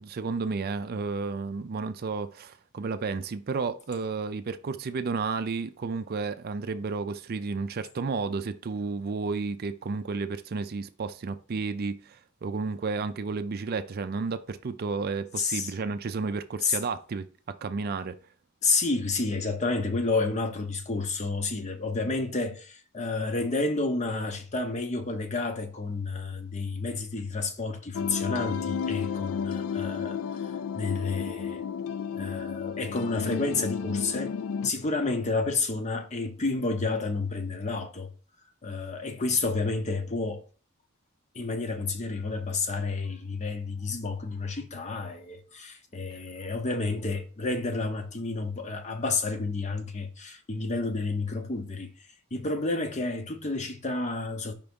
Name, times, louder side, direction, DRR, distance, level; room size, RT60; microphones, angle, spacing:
voice 1, 0.0-18.2, right 4 dB, 45° right, 0.4 m, -32 dB
voice 2, 15.4-15.7 16.6-16.8 18.6-31.6 32.1-34.3 34.6-38.1 38.6-40.4 41.3-51.9 52.3-54.5, left 3 dB, 35° left, 0.7 m, -30 dB
sound 1, 27.9-34.7, left 7 dB, 80° left, 0.3 m, -32 dB
5.2 x 3.5 x 5.2 m
head